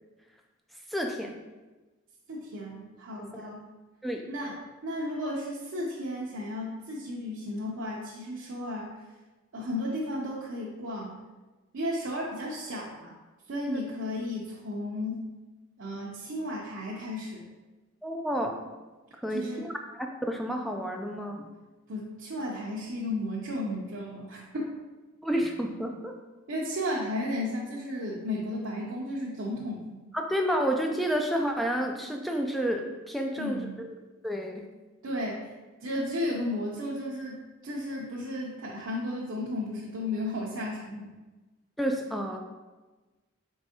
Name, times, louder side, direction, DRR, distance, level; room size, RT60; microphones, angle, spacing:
voice 1, 0.9-1.4 3.3-3.5 4.0-4.3 13.7-13.8 18.0-18.6 19.2-19.7 20.2-21.5 25.2-26.2 30.1-33.9 34.2-34.6 41.8-42.4, equal, ahead, 2 dB, 0.3 m, -30 dB
voice 2, 2.3-3.6 4.3-9.0 9.5-11.1 11.7-13.1 13.5-15.3 15.8-17.4 19.3-19.7 21.9-24.7 26.5-30.0 33.4-33.7 35.0-35.5 35.8-41.1, left 1 dB, 80° right, -4 dB, 0.6 m, -34 dB
4.6 x 3.4 x 2.8 m, 1.2 s
head